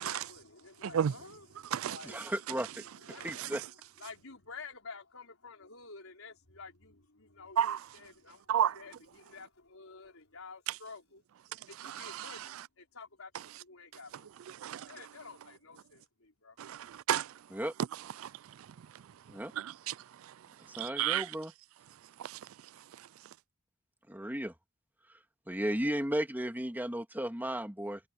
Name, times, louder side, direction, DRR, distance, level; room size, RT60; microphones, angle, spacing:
voice 1, 0.0-2.4 2.8-3.3 4.0-11.2 11.7-14.3 14.9-16.6, left 4 dB, 75° left, 5.1 m, -51 dB
voice 2, 0.8-1.1 1.7-2.0 3.3-3.6 7.6-7.8 8.5-8.8 11.8-12.3 14.5-14.9 16.6-17.3 18.2-18.7 19.5-20.3 20.7-21.3 22.2-22.5 22.9-23.1, right 9 dB, 70° right, 0.4 m, -33 dB
voice 3, 2.0-3.6 17.5-17.7 19.3-19.5 20.8-21.5 24.1-24.5 25.5-28.0, right 1 dB, 10° right, 2.3 m, -35 dB
head